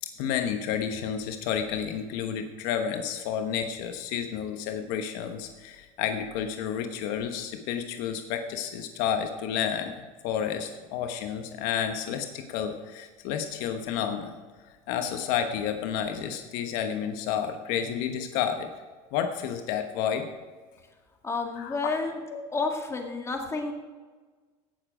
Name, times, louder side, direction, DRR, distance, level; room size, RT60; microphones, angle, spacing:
voice 1, 0.0-9.9 10.2-14.3 14.9-18.7 19.1-20.2 21.6-21.8 22.3-22.4, left 8 dB, 70° left, 6 dB, 1.1 m, -30 dB
voice 2, 21.2-22.2 22.5-23.7, left 3 dB, 20° left, 2 dB, 2.0 m, -30 dB
16.5 x 7.1 x 5.0 m, 1.4 s
supercardioid pair, 125°, 16 cm